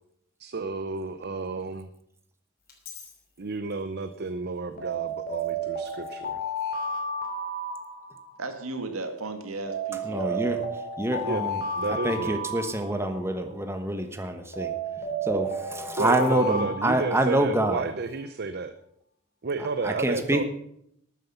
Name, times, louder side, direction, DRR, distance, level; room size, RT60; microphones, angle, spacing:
voice 1, 0.4-1.9 3.4-6.4 11.3-11.5 11.8-12.4 15.9-18.7 19.4-20.4, right 4 dB, 50° right, 10 dB, 0.7 m, -31 dB
Alarm, 2.7-3.1 4.8-8.5 9.7-13.4 14.5-17.7, right 1 dB, 45° left, 3.0 m, -32 dB
voice 2, 8.4-10.7, right 3 dB, 75° right, 6 dB, 2.1 m, -35 dB
voice 3, 10.1-10.6 11.0-11.6 11.9-14.7 15.2-17.8 19.8-20.4, right 1 dB, 10° right, 6 dB, 1.1 m, -26 dB
13.0 x 9.3 x 7.0 m, 0.73 s
head